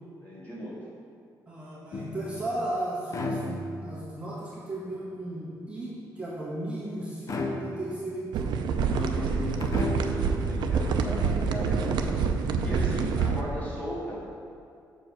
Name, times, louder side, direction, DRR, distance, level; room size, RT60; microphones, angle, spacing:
voice 1, 0.2-0.8 8.8-9.7 10.3-12.1 12.6-14.2, equal, 25° left, -7 dB, 2.0 m, -36 dB
voice 2, 1.5-8.5, right 1 dB, 15° right, -8 dB, 1.6 m, -35 dB
sound 1, 1.9-2.5 3.1-4.0 7.3-8.1 9.6-10.4, left 2 dB, 45° left, 0.8 m, -33 dB
sound 2, 8.3-13.4, right 5 dB, 85° right, 0.5 m, -27 dB
6.9 x 4.8 x 6.1 m, 2.4 s
cardioid pair, 145°, 7 cm